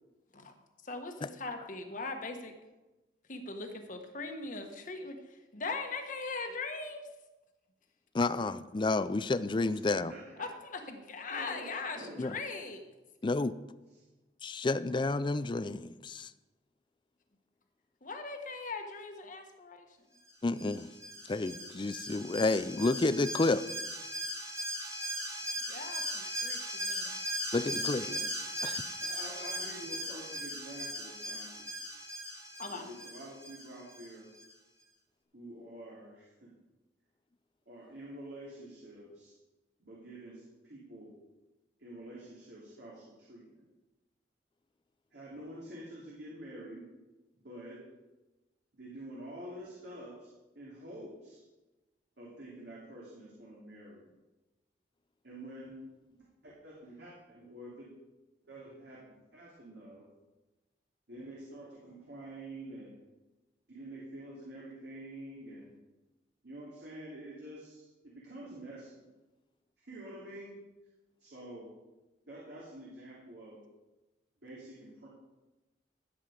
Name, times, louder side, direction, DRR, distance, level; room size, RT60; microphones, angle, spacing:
voice 1, 0.8-2.5 3.3-7.0 10.4-12.8 18.0-20.0 25.7-27.2 27.6-28.3 32.6-32.9, left 3 dB, 45° left, 5 dB, 1.4 m, -40 dB
voice 2, 8.1-10.1 12.2-12.4 13.2-13.6 14.4-16.3 20.4-20.9 21.3-23.7 27.5-28.1 28.6-28.8, left 3 dB, 25° left, 15 dB, 0.4 m, -30 dB
voice 3, 9.6-10.5 11.3-12.2 13.9-14.0 28.1-28.2 29.0-31.7 32.7-34.3 35.3-36.5 37.7-39.3 39.8-41.1 41.8-43.6 45.1-46.8 47.3-47.8 48.7-50.3 50.5-51.4 52.2-54.1 55.2-55.8 56.1-57.9 58.4-59.0 59.3-60.0 61.1-63.0 63.7-65.7 66.4-69.1 69.8-70.6 71.2-71.7 72.3-73.6 74.4-75.1, right 1 dB, 70° right, -6 dB, 2.9 m, -48 dB
Alarm, 20.6-34.1 34.4-34.5, equal, 20° right, 1.5 m, -38 dB
14.0 x 7.7 x 4.9 m, 1.1 s
head